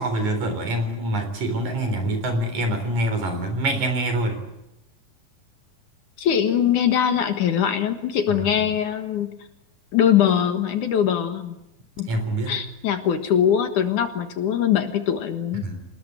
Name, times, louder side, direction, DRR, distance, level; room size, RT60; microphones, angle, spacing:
voice 1, 0.0-4.4 8.3-8.7 12.1-12.6 15.6-15.9, right 1 dB, 55° right, 7 dB, 5.1 m, -25 dB
voice 2, 6.2-9.3 9.9-11.6 12.0-12.1 12.5-15.7, left 9 dB, 65° left, 7 dB, 2.7 m, -22 dB
27.5 x 20.0 x 8.8 m, 0.87 s
omnidirectional pair, 4.2 m